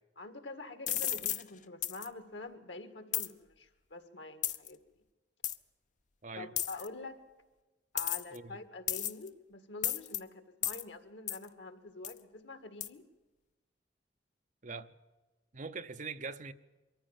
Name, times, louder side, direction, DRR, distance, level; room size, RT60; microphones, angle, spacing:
voice 1, 0.2-4.8 6.4-7.2 7.9-13.0, left 3 dB, 85° left, 1.8 m, -46 dB
sound 1, 0.9-1.4 1.8-2.1 3.1-3.3 4.4-4.7 5.4-5.6 6.6-6.9 8.0-8.4 8.9-9.3 9.8-10.2 10.6-10.8 11.3-11.4 12.0-12.2 12.8-12.9, left 11 dB, 45° left, 0.7 m, -33 dB
voice 2, 15.5-16.5, right 4 dB, 45° right, 0.8 m, -42 dB
23.0 x 14.5 x 8.9 m
head